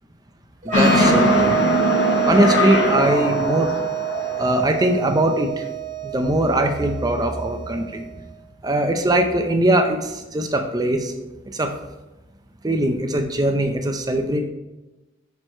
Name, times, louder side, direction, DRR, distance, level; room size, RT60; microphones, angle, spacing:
sound 1, 0.6-8.1, right 13 dB, 45° right, 1.0 m, -27 dB
sound 2, 0.7-4.9, left 1 dB, 80° left, 1.0 m, -21 dB
voice 1, 0.7-1.6 2.2-3.7 4.4-5.6 6.0-8.0 8.6-11.1 11.5-11.7 12.6-14.4, right 1 dB, 20° right, 5 dB, 0.6 m, -21 dB
6.4 x 4.7 x 4.3 m, 1.0 s
head